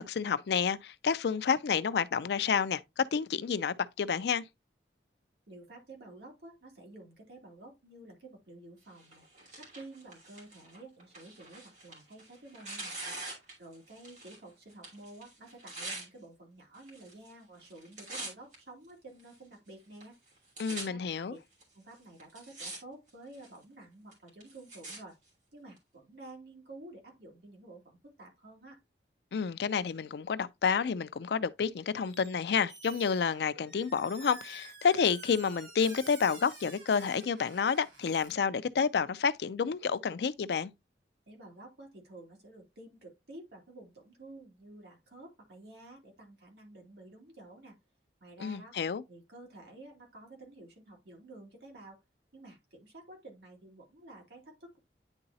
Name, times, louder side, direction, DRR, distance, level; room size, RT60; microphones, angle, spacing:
voice 1, 0.0-4.4 20.6-21.4 29.3-40.7 48.4-49.0, left 6 dB, 65° left, 0.4 m, -30 dB
voice 2, 5.5-9.2 9.6-13.1 13.6-20.2 20.7-21.0 21.3-21.4 21.7-25.2 25.5-28.8 41.3-47.8 48.2-48.8 49.1-52.0 52.3-54.8, right 2 dB, 65° right, 2.4 m, -51 dB
Tearing, 9.0-14.4 14.7-16.1 16.8-17.3 17.6-18.5 19.2-19.3 20.0-20.1 20.3-20.8 21.6-21.7 22.2-22.8 23.1-23.6 24.1-25.0 25.8-25.9, right 2 dB, 45° right, 2.8 m, -44 dB
Squeak, 32.0-32.4 32.7-38.3, right 3 dB, 90° right, 3.4 m, -50 dB
9.7 x 3.9 x 2.7 m
head